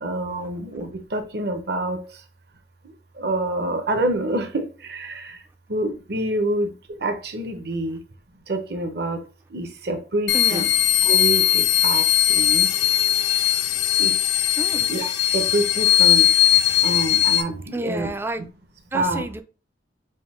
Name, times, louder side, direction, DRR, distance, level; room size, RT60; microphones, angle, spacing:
voice 1, 0.0-2.0 3.2-4.6 4.9-5.2 5.7-6.7 7.0-8.0 8.5-9.2 9.5-10.7 11.0-12.0 12.3-12.7 14.0-14.1 14.9-16.3 16.8-18.1 18.9-19.2, right 2 dB, 60° right, 0.8 m, -26 dB
sound 1, 10.3-17.4, left 11 dB, 65° left, 0.5 m, -19 dB
voice 2, 10.3-10.7 14.6-14.9 17.7-18.5 18.9-19.4, right 2 dB, 10° right, 0.3 m, -30 dB
3.7 x 2.6 x 4.2 m
head